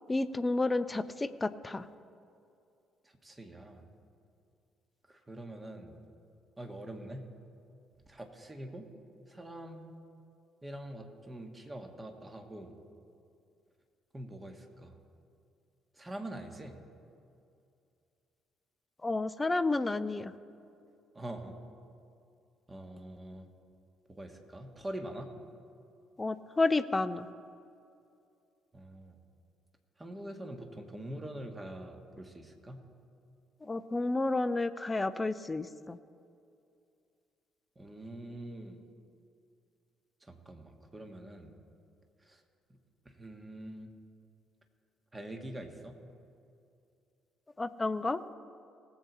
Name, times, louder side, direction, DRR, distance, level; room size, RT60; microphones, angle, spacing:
voice 1, 0.1-1.8 19.0-20.3 26.2-27.3 33.6-36.0 47.6-48.2, left 2 dB, 20° left, 13 dB, 0.5 m, -31 dB
voice 2, 3.0-3.8 5.1-6.0 6.6-7.3 8.1-8.9 9.3-9.9 10.6-12.8 14.1-14.9 15.9-16.8 21.1-21.6 22.7-23.5 24.1-25.3 28.7-29.2 30.0-32.8 37.8-38.9 40.2-41.5 42.2-42.4 43.1-43.9 45.1-45.9, right 1 dB, 20° right, 4 dB, 1.6 m, -44 dB
19.0 x 8.0 x 4.1 m, 2.5 s
figure-of-eight pair, 45°, 0 cm